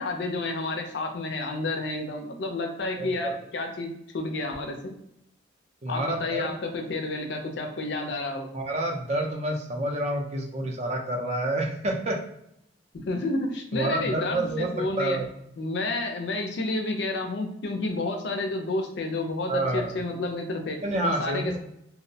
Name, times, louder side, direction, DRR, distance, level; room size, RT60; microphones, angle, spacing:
voice 1, 0.0-5.0 5.9-8.5 12.9-15.2 15.6-21.6, left 2 dB, 65° left, 4 dB, 0.4 m, -30 dB
voice 2, 3.0-3.3 5.8-6.5 8.5-12.2 13.7-14.7 15.0-15.3 19.5-19.9 20.8-21.6, right 1 dB, 35° right, 2 dB, 0.4 m, -28 dB
2.5 x 2.0 x 2.6 m, 0.77 s
head